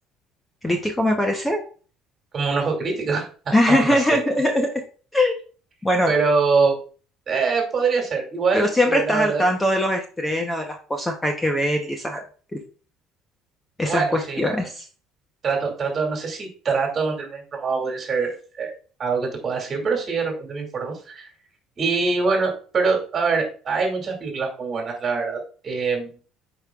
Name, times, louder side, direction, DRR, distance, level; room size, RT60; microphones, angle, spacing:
voice 1, 0.6-1.6 3.5-4.8 5.1-5.4 5.8-6.1 8.5-12.2 12.5-12.6 13.8-14.8, left 1 dB, 10° left, 3 dB, 0.8 m, -21 dB
voice 2, 2.3-4.0 6.1-6.8 7.3-9.4 13.8-14.7 15.4-18.7 19.0-21.3 21.8-26.1, right 4 dB, 30° right, 1 dB, 2.3 m, -24 dB
8.0 x 5.3 x 2.3 m, 0.39 s
cardioid pair, 145°, 0 cm